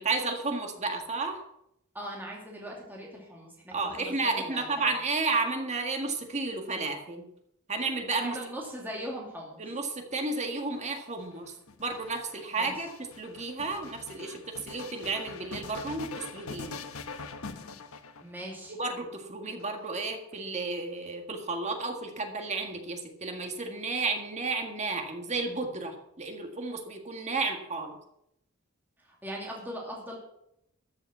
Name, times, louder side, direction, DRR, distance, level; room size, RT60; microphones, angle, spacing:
voice 1, 0.0-1.4 3.7-7.3 7.7-8.4 9.6-11.5 11.8-16.7 18.8-28.0, right 3 dB, 35° right, 4 dB, 1.8 m, -32 dB
voice 2, 1.9-4.6 8.2-9.6 12.6-12.7 18.2-18.7 29.0-30.2, equal, 10° right, -2 dB, 2.7 m, -40 dB
sound 1, 10.7-18.7 19.5-20.4, left 4 dB, 80° left, 1.1 m, -43 dB
13.5 x 7.1 x 7.3 m, 0.78 s
head